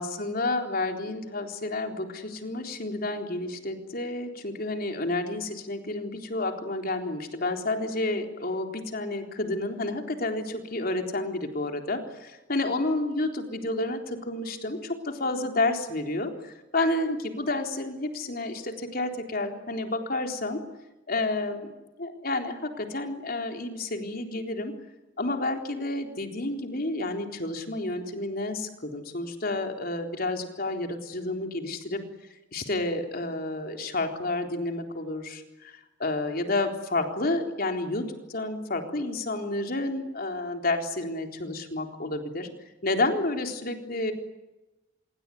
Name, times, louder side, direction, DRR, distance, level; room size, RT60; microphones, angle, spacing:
voice 1, 0.0-20.6 21.1-21.7 22.0-24.8 25.2-32.0 32.5-42.5 42.8-44.1, left 2 dB, 50° left, 4 dB, 3.9 m, -30 dB
26.5 x 23.0 x 9.6 m, 1.0 s
head